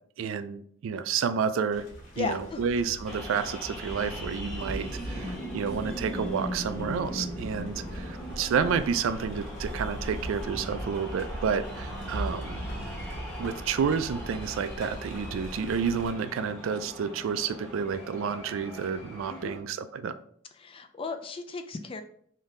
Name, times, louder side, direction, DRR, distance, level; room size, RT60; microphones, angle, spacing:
voice 1, 0.2-1.9 2.2-12.6 13.4-20.1, right 6 dB, 80° right, 11 dB, 0.3 m, -30 dB
sound 1, 1.7-16.1, equal, 80° left, 1.5 m, -39 dB
voice 2, 2.2-2.6 19.3-19.6 20.6-22.0, left 4 dB, 25° left, 7 dB, 0.3 m, -35 dB
sound 2, 3.1-19.6, equal, ahead, 1.2 m, -41 dB
3.6 x 2.7 x 3.6 m, 0.62 s
head